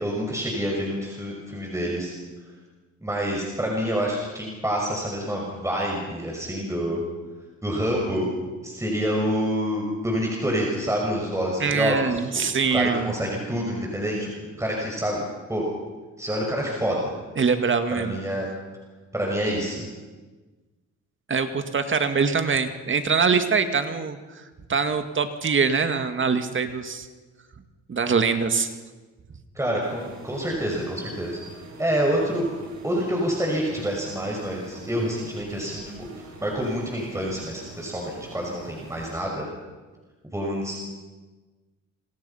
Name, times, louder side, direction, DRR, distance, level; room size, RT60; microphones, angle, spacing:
voice 1, 0.0-2.1 3.0-7.0 7.6-8.3 8.6-12.2 12.7-15.2 15.5-15.6 16.2-17.1 17.9-18.5 19.1-19.8 29.5-31.4 31.8-32.5 32.8-36.1 36.4-39.4 40.3-40.8, equal, 10° right, -1 dB, 6.1 m, -27 dB
voice 2, 11.6-13.1 17.4-18.2 21.3-24.4 24.7-27.1 27.9-28.7, right 5 dB, 40° right, 8 dB, 2.1 m, -23 dB
sound 1, 29.8-39.2, right 3 dB, 65° right, 7.2 m, -45 dB
28.0 x 25.5 x 5.8 m, 1.3 s
cardioid pair, 90°, 30 cm